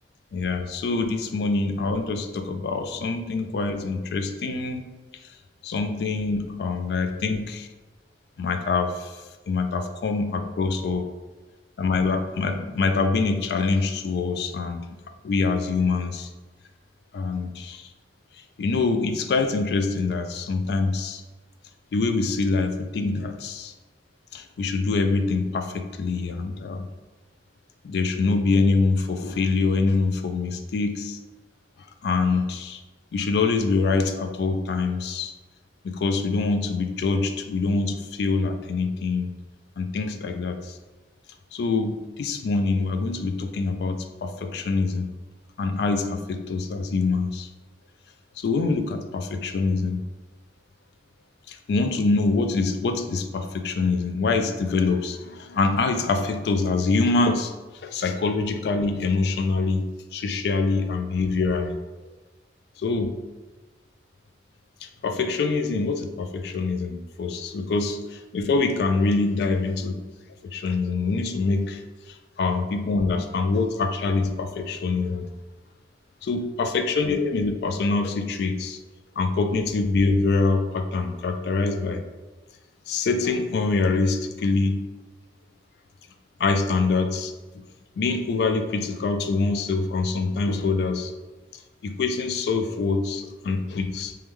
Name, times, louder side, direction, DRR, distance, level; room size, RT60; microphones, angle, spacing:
voice 1, 0.3-4.9 5.6-7.6 8.4-11.1 11.8-14.9 15.2-16.3 17.1-17.9 18.6-21.2 21.9-23.7 24.3-26.9 27.8-31.2 32.0-32.8 33.1-35.3 35.8-39.3 39.8-40.8 41.5-45.1 45.6-47.5 48.4-50.0 51.5-57.5 57.8-61.8 62.8-63.1 64.8-68.0 68.3-70.0 70.5-71.8 72.1-75.3 76.2-78.8 79.2-82.0 82.9-84.8 86.4-87.3 88.0-91.1 91.8-94.1, left 3 dB, 65° left, 7 dB, 0.3 m, -25 dB
3.0 x 2.2 x 3.4 m, 1.2 s
head